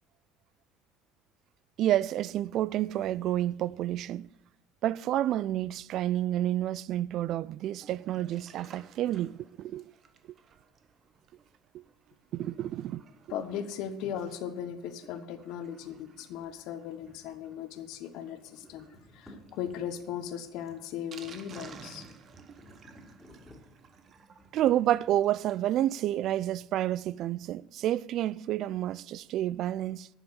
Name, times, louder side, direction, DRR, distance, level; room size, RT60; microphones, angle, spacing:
voice 1, 1.8-4.3 4.8-9.8 11.7-11.8 12.3-13.0 24.5-30.1, right 12 dB, 50° right, 0.3 m, -29 dB
Sink (filling or washing), 7.6-25.7 26.0-26.1 26.3-26.4 26.8-26.9, right 6 dB, 35° right, 1.0 m, -55 dB
voice 2, 13.3-18.9 19.1-22.1, left 9 dB, 65° left, 1.2 m, -38 dB
sound 1, 15.9-18.0 18.3-25.6, equal, 5° left, 3.3 m, -57 dB
12.0 x 7.1 x 8.0 m
cardioid pair, 140°, 0 cm